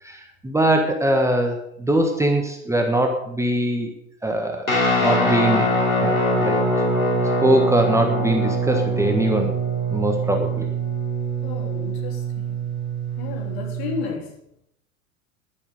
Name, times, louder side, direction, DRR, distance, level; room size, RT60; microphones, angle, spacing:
voice 1, 0.0-3.9 4.2-4.7 5.0-5.7 6.0-6.6 7.4-9.6 9.9-10.7, right 1 dB, 5° right, 3 dB, 1.5 m, -22 dB
Guitar, 4.7-14.0, right 1 dB, 85° left, 3.0 m, -23 dB
voice 2, 11.4-12.6 13.2-14.3, left 5 dB, 50° left, 1 dB, 3.6 m, -32 dB
11.0 x 10.5 x 6.4 m, 0.74 s
figure-of-eight pair, 90°, 41 cm